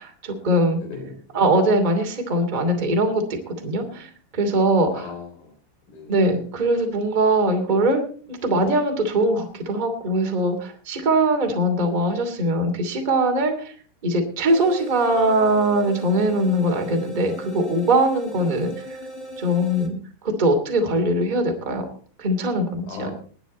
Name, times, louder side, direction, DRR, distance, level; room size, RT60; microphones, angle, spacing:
voice 1, 0.0-0.8 1.3-5.1 6.1-8.0 8.3-13.7 14.0-18.7 19.4-19.9 20.2-21.9 22.2-23.1, right 1 dB, 20° right, 4 dB, 1.2 m, -21 dB
voice 2, 0.8-1.2 4.9-5.5 5.9-6.2 18.4-18.7 22.9-23.1, left 4 dB, 50° left, 2 dB, 5.8 m, -37 dB
sound 1, 14.5-19.9, equal, 25° left, 1.8 m, -37 dB
21.0 x 9.1 x 4.3 m, 0.43 s
omnidirectional pair, 5.4 m